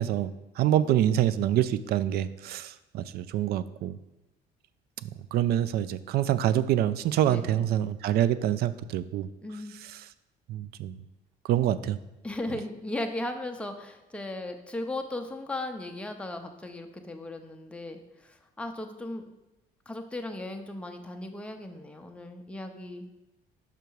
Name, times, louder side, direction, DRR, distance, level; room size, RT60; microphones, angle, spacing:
voice 1, 0.0-4.0 5.0-9.3 10.5-11.0 11.5-12.0, right 11 dB, 70° right, 15 dB, 0.4 m, -26 dB
voice 2, 7.3-7.6 9.4-9.7 12.2-19.2 19.9-23.1, left 1 dB, 5° left, 4 dB, 0.7 m, -37 dB
5.8 x 5.1 x 4.6 m, 0.99 s
cardioid pair, 110°, 17 cm